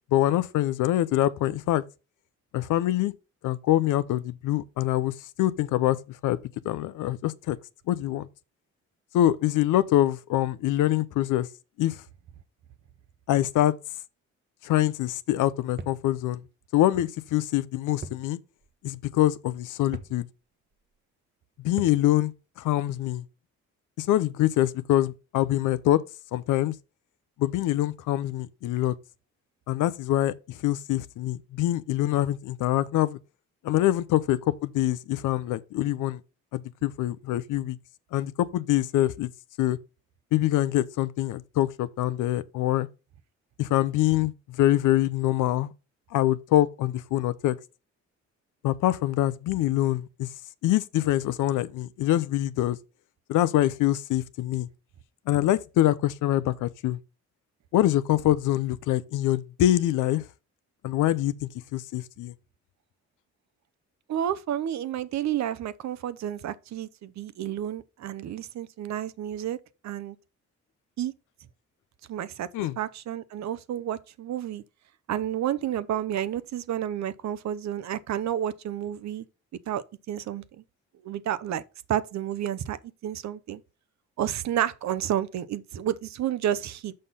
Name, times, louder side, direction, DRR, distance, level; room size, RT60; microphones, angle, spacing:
voice 1, 0.1-1.8 2.5-3.1 3.4-5.1 5.4-6.4 6.6-7.6 7.9-8.3 9.1-11.5 11.8-12.0 13.3-13.7 14.6-16.4 16.7-18.4 18.8-20.3 21.6-23.2 24.0-26.0 26.3-26.7 27.4-28.9 29.7-33.2 33.6-36.2 36.5-37.8 38.1-39.3 39.6-39.8 40.3-42.9 43.6-44.3 44.6-45.7 46.1-47.6 48.6-50.3 50.6-52.8 53.3-54.7 55.3-57.0 57.7-60.2 60.8-62.3 72.5-72.8, left 14 dB, 85° left, 0.7 m, -25 dB
sound 1, 15.8-16.1 18.0-18.3 18.6-18.7 19.9-20.2 21.8-22.1, right 4 dB, 35° right, 0.9 m, -39 dB
voice 2, 64.1-69.6 69.8-70.2 71.0-71.1 72.1-72.5 72.8-74.6 75.1-79.3 79.7-80.6 81.0-81.6 81.9-82.8 83.0-83.6 84.2-86.9, right 10 dB, 65° right, 0.8 m, -30 dB
6.5 x 5.6 x 5.6 m
cardioid pair, 90°, 30 cm